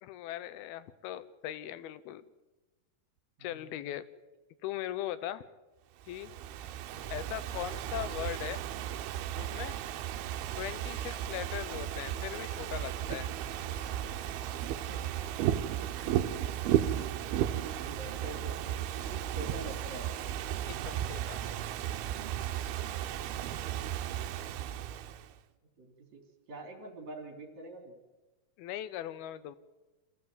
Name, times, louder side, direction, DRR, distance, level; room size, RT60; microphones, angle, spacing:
voice 1, 0.0-2.2 3.4-4.0 4.6-5.5 6.1-6.3 7.1-8.6 9.4-9.8 10.6-13.3 20.7-21.4 28.6-29.6, left 12 dB, 85° left, 15 dB, 2.7 m, -39 dB
voice 2, 3.4-3.8 6.9-7.3 14.7-15.3 17.3-20.1 23.8-24.0 24.3-25.3 25.8-26.2 26.5-28.0, right 2 dB, 50° right, 3 dB, 4.2 m, -47 dB
Ocean / Fireworks, 6.0-25.3, right 11 dB, 85° right, 2.8 m, -35 dB
Bowed string instrument, 11.0-16.2, left 1 dB, 10° left, 2.1 m, -54 dB
26.0 x 15.0 x 7.9 m, 1.2 s
omnidirectional pair, 4.3 m